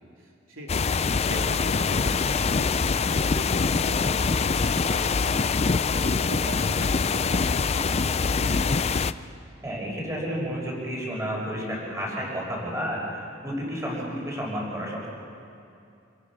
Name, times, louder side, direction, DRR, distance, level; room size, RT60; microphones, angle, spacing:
voice 1, 0.2-5.4 5.9-8.8, right 1 dB, 80° right, -1 dB, 3.2 m, -39 dB
sound 1, 0.7-9.1, left 4 dB, 30° left, 0.5 m, -24 dB
voice 2, 9.6-15.1, equal, 15° right, -3 dB, 6.0 m, -31 dB
27.0 x 25.0 x 6.3 m, 2.6 s
head